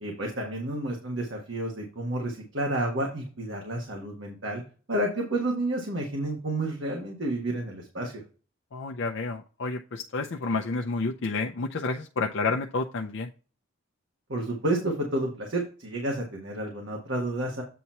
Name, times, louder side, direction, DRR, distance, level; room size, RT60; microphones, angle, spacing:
voice 1, 0.0-4.6 4.9-8.2 14.3-17.6, right 1 dB, 65° right, 0 dB, 1.5 m, -30 dB
voice 2, 8.7-13.3, left 3 dB, 65° left, 3 dB, 0.6 m, -30 dB
8.3 x 3.0 x 5.5 m, 0.36 s
head